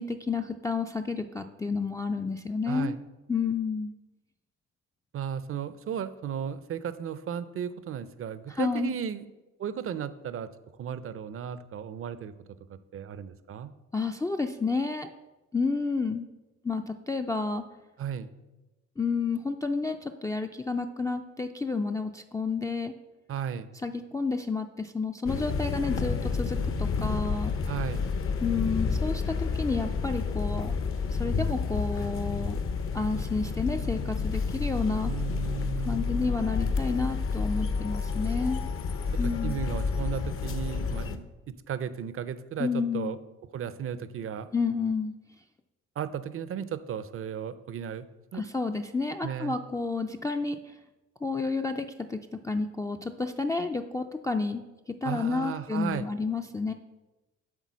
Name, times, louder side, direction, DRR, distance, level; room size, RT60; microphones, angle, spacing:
voice 1, 0.0-3.0 3.3-3.9 8.5-9.0 13.9-15.1 15.5-16.3 16.6-17.6 19.0-22.9 23.8-27.5 28.4-30.7 31.1-32.6 32.9-35.1 35.9-38.6 39.2-39.6 42.6-43.2 44.5-45.1 48.3-50.8 51.2-52.2 52.4-56.7, left 4 dB, 10° left, 4 dB, 0.3 m, -30 dB
voice 2, 2.7-3.0 5.1-9.3 9.6-10.5 10.8-12.3 12.7-13.7 18.0-18.3 23.3-23.7 27.7-28.1 35.1-36.4 39.2-43.2 43.5-44.5 46.0-48.1 48.3-48.4 49.2-49.6 55.0-56.1, right 8 dB, 45° right, 14 dB, 0.5 m, -35 dB
sound 1, 25.3-41.2, left 4 dB, 45° left, 0.6 m, -30 dB
8.3 x 3.8 x 6.1 m, 1.1 s
cardioid pair, 90°, 30 cm